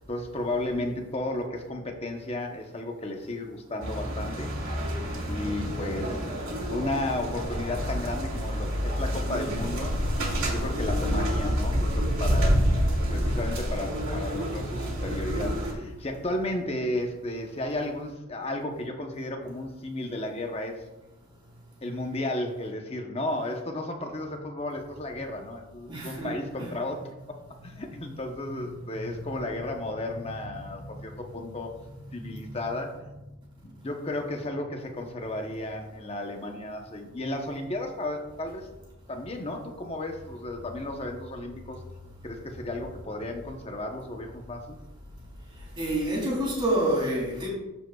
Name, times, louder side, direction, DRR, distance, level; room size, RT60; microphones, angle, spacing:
voice 1, 0.1-4.5 5.3-6.2 6.7-10.0 10.4-12.6 13.1-20.8 21.8-27.0 27.6-31.7 32.1-33.0 33.6-38.7 39.1-41.8 42.2-44.8, left 1 dB, 30° left, 3 dB, 0.9 m, -33 dB
sound 1, 3.8-15.7, equal, 70° right, 2.4 m, -28 dB
voice 2, 25.9-26.7 45.8-47.5, right 1 dB, 20° right, -3 dB, 2.7 m, -27 dB
14.0 x 5.1 x 2.3 m, 1.0 s
head